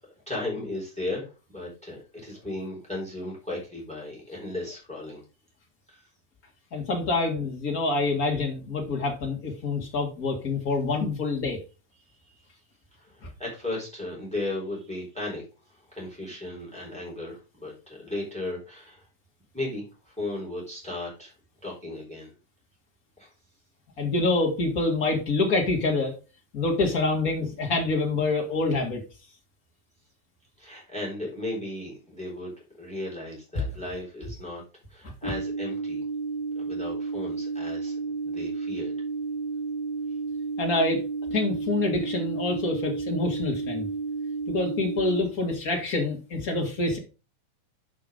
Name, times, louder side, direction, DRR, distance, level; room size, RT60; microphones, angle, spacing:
voice 1, 0.3-5.2 5.9-6.1 12.2-12.4 13.0-15.4 15.7-19.1 19.5-21.3 21.6-22.3 23.2-23.3 30.6-34.6 34.9-36.0 36.6-38.9, left 2 dB, ahead, -2 dB, 3.8 m, -36 dB
voice 2, 6.7-11.6 24.0-26.1 26.5-29.0 35.2-35.3 40.6-41.0 41.3-43.9 44.5-47.0, left 3 dB, 40° left, 2 dB, 1.3 m, -26 dB
sound 1, 35.2-45.2, right 4 dB, 25° right, 0.9 m, -32 dB
6.9 x 5.7 x 5.1 m, 0.32 s
omnidirectional pair, 4.0 m